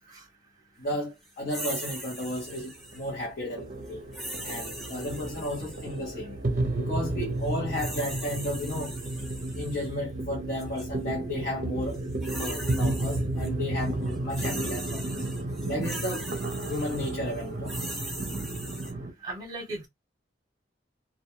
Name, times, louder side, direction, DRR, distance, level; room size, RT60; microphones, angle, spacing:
voice 1, 0.8-4.0 4.4-6.4 6.7-9.0 9.5-12.0 12.4-15.2 15.7-16.3 16.7-17.9, left 1 dB, 45° left, 0.7 m, -33 dB
sound 1, 1.5-3.1 4.1-6.0 7.4-9.9 10.6-10.8 11.9-13.5 13.8-18.9, right 1 dB, ahead, 0.7 m, -40 dB
sound 2, 2.3-19.1, right 2 dB, 50° right, 0.6 m, -32 dB
voice 2, 19.2-19.9, right 2 dB, 20° right, 0.9 m, -36 dB
2.2 x 2.2 x 2.9 m
head